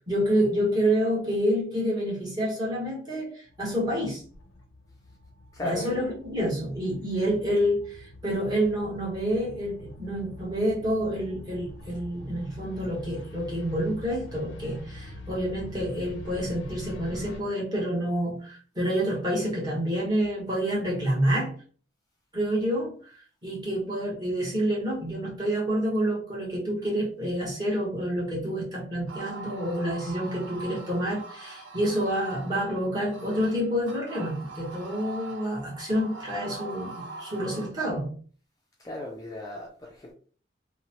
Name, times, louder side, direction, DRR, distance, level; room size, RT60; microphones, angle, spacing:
voice 1, 0.1-4.2 5.6-21.6 22.3-23.0 23.4-38.2, equal, 20° right, 1.0 m, -28 dB
sound 1, 3.5-17.4, left 1 dB, 85° left, 0.6 m, -45 dB
voice 2, 5.5-6.0 38.8-40.1, left 1 dB, 20° left, 0.4 m, -36 dB
sound 2, 29.1-37.7, right 3 dB, 75° right, 0.5 m, -42 dB
2.9 x 2.1 x 2.8 m
head